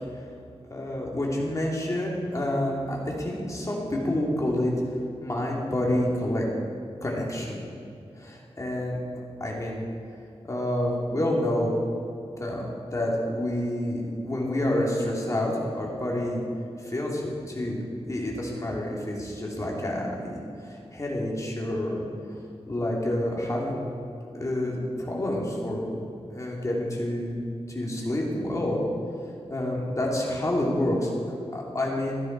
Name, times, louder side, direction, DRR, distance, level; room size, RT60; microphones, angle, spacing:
voice 1, 0.7-4.7 5.2-6.4 7.0-7.7 8.2-9.0 9.4-9.8 10.5-11.8 12.4-16.4 16.8-22.0 22.7-24.0 24.3-25.9 26.3-27.4 27.7-28.8 29.5-31.1 31.5-32.2, left 1 dB, 30° left, -3 dB, 2.9 m, -28 dB
14.5 x 12.0 x 4.7 m, 2.8 s
wide cardioid pair, 120°, 11 cm